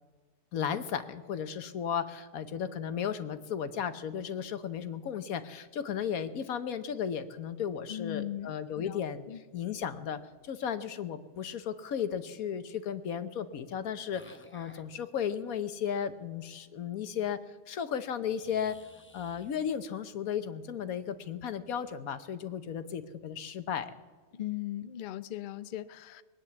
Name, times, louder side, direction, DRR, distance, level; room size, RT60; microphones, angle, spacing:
voice 1, 0.5-9.2 9.5-10.2 10.5-17.4 17.7-18.7 19.1-24.0, left 8 dB, 85° left, 10 dB, 1.4 m, -35 dB
voice 2, 7.9-9.4 24.3-26.2, left 13 dB, 55° left, 14 dB, 0.6 m, -39 dB
sound 1, 14.1-14.8 18.3-19.5, left 1 dB, 10° left, 0.6 m, -55 dB
21.5 x 9.7 x 7.0 m, 1.4 s
omnidirectional pair, 1.5 m